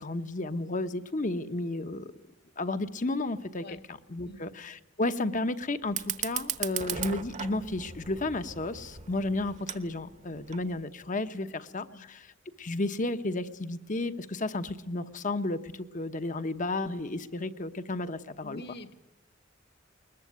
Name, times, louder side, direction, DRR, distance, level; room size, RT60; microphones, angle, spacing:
voice 1, 0.0-2.1 2.6-12.3 12.6-18.6, left 2 dB, 40° left, 10 dB, 1.0 m, -32 dB
Fire, 5.8-10.8, right 8 dB, 40° right, 1.1 m, -38 dB
voice 2, 11.4-12.1 18.4-18.9, left 1 dB, 55° left, 10 dB, 1.7 m, -47 dB
21.5 x 20.5 x 9.4 m, 0.91 s
head